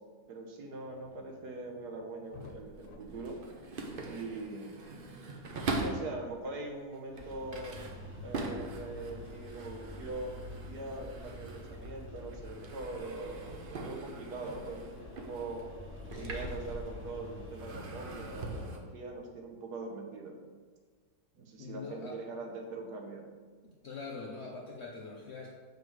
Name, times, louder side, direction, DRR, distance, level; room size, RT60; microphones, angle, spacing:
voice 1, 0.3-3.4 4.1-4.8 5.7-7.8 8.2-15.7 16.1-20.4 21.3-23.3, right 2 dB, 70° right, 1 dB, 1.4 m, -42 dB
sound 1, 0.8-4.1 4.4-4.6 8.1-8.2 10.5-10.9 11.4-13.5 13.7-14.0 15.0-18.8, left 5 dB, 90° left, 1.3 m, -57 dB
sound 2, 2.2-6.2 6.8-12.0 12.3-17.1 17.5-18.8, right 2 dB, 55° right, 0.6 m, -42 dB
sound 3, 7.1-18.6, left 1 dB, 10° right, 0.8 m, -47 dB
voice 2, 16.1-16.5 21.6-22.2 23.6-25.5, left 4 dB, 65° left, -1 dB, 0.6 m, -44 dB
7.1 x 5.1 x 3.1 m, 1.5 s
omnidirectional pair, 1.8 m